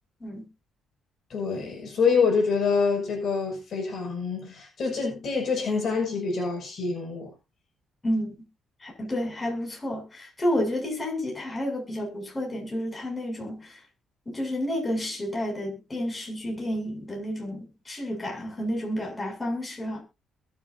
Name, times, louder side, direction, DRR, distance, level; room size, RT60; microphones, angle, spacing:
voice 1, 1.3-7.3, left 5 dB, 50° left, 5.9 m, -26 dB
voice 2, 8.0-8.3 8.8-13.8 14.3-20.0, left 1 dB, 20° left, 7.1 m, -30 dB
22.0 x 7.7 x 2.7 m
cardioid pair, 130°, 0 cm